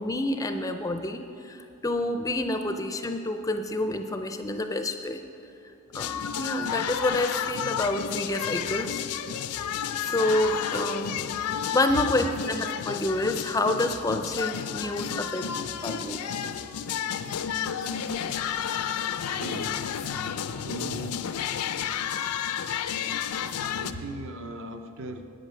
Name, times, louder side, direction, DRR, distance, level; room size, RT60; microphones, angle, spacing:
voice 1, 0.0-5.2 5.9-9.0 10.0-11.2 11.7-15.5 15.8-16.2, left 2 dB, 15° left, 6 dB, 0.4 m, -28 dB
sound 1, 5.9-23.9, left 8 dB, 90° left, 0.4 m, -31 dB
voice 2, 19.4-19.9 20.5-21.2 23.7-25.3, right 2 dB, 60° right, 7 dB, 0.7 m, -38 dB
9.2 x 8.9 x 5.6 m, 2.7 s
head